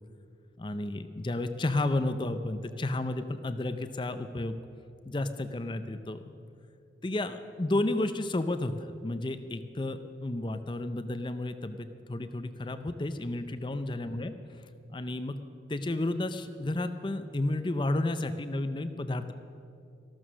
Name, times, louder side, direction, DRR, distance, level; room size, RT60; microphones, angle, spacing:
voice 1, 0.6-4.5 5.1-6.3 7.0-14.3 14.9-15.3 15.7-19.3, left 2 dB, 25° left, 10 dB, 0.5 m, -32 dB
14.5 x 12.5 x 6.3 m, 2.5 s
head